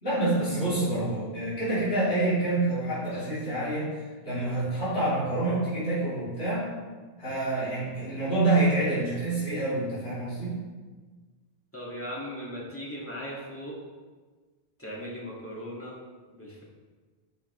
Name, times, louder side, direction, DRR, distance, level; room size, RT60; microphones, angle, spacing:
voice 1, 0.0-6.7 7.2-10.6, right 2 dB, 90° left, -12 dB, 3.5 m, -27 dB
voice 2, 11.7-13.8 14.8-16.0 16.3-16.6, equal, 10° left, -5 dB, 2.0 m, -38 dB
13.0 x 5.8 x 3.2 m, 1.4 s
omnidirectional pair, 1.1 m